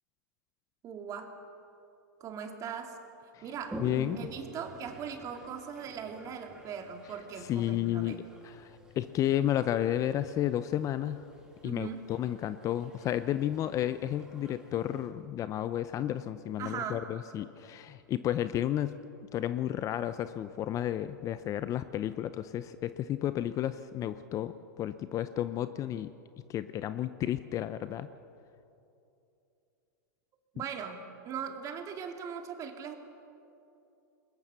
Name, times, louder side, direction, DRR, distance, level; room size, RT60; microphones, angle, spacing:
voice 1, 0.8-1.4 2.2-3.0 3.4-3.8 4.2-8.2 11.6-12.1 16.6-17.0 30.5-33.0, right 7 dB, 35° right, 5 dB, 2.3 m, -40 dB
Toilet flush, 3.6-15.1, right 1 dB, 5° right, 3.0 m, -49 dB
voice 2, 3.8-4.2 7.4-8.2 8.4-11.3 11.6-18.9 19.3-26.1 26.5-28.1, left 12 dB, 30° left, 13 dB, 0.6 m, -32 dB
21.5 x 20.0 x 6.8 m, 2.8 s
hypercardioid pair, 115°, 10 cm